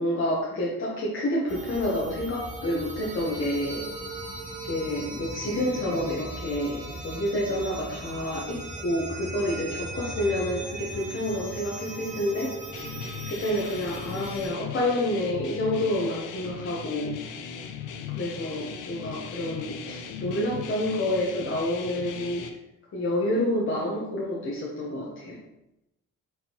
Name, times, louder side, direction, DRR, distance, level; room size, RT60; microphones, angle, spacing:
voice 1, 0.0-3.9 4.6-12.6 13.3-17.2 18.1-22.5 22.9-25.4, left 1 dB, 45° left, -4 dB, 0.9 m, -28 dB
sound 1, 1.5-14.5, right 2 dB, 25° right, 0.8 m, -38 dB
sound 2, 12.7-22.5, left 7 dB, 80° left, 0.6 m, -38 dB
4.4 x 3.6 x 2.9 m, 0.89 s
cardioid pair, 90°, 30 cm